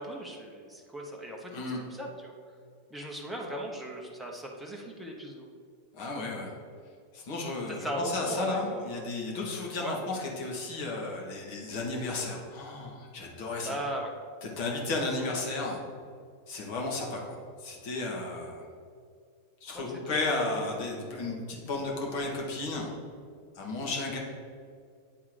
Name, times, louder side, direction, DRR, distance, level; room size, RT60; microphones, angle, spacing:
voice 1, 0.0-2.3 2.9-5.5 7.8-9.1 9.8-10.0 13.6-14.1, right 1 dB, ahead, -2 dB, 1.0 m, -38 dB
voice 2, 1.5-1.8 5.9-6.5 7.1-13.8 14.4-15.8 16.5-18.6 19.6-22.9 23.5-24.2, left 2 dB, 45° left, -1 dB, 1.6 m, -33 dB
9.2 x 3.7 x 4.8 m, 2.2 s
figure-of-eight pair, 90°, 0 cm